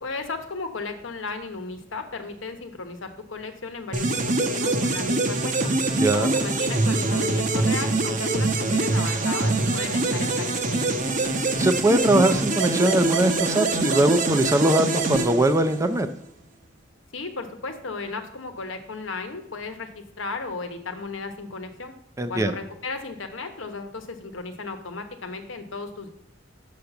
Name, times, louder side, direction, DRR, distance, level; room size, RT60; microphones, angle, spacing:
voice 1, 0.0-5.7 6.1-11.0 17.1-19.9 20.2-21.9 22.3-26.1, left 3 dB, 90° left, 6 dB, 1.1 m, -35 dB
sound 1, 3.9-16.0, right 2 dB, 45° right, 0.9 m, -24 dB
voice 2, 6.0-6.3 11.6-16.1 22.2-22.5, right 1 dB, 15° right, 9 dB, 0.5 m, -21 dB
6.5 x 5.8 x 6.9 m, 0.74 s
head